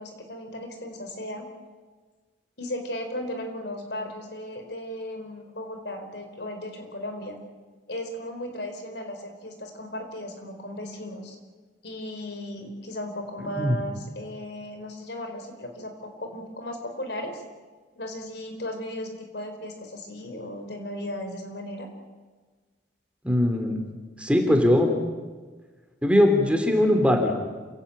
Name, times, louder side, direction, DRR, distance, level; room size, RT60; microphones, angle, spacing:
voice 1, 0.0-1.5 2.6-7.4 7.9-11.4 11.8-17.4 17.9-21.9, left 1 dB, 65° left, 5 dB, 4.5 m, -36 dB
voice 2, 23.2-23.9 24.2-24.9 26.0-27.3, left 1 dB, 5° right, 3 dB, 3.3 m, -20 dB
28.0 x 17.0 x 8.8 m, 1.4 s
head